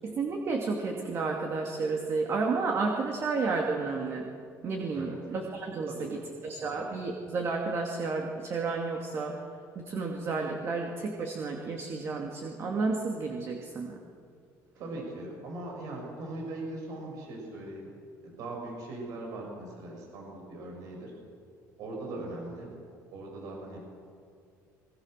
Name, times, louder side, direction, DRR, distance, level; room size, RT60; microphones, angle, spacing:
voice 1, 0.0-4.3 4.6-9.4 9.8-14.0, right 4 dB, 40° right, 1 dB, 2.5 m, -31 dB
voice 2, 5.9-6.3 6.6-6.8 14.8-17.9 18.2-21.1 21.8-22.7 23.1-23.8, right 2 dB, 65° right, -1 dB, 6.9 m, -40 dB
24.5 x 23.5 x 6.7 m, 2.3 s
cardioid pair, 135°, 7 cm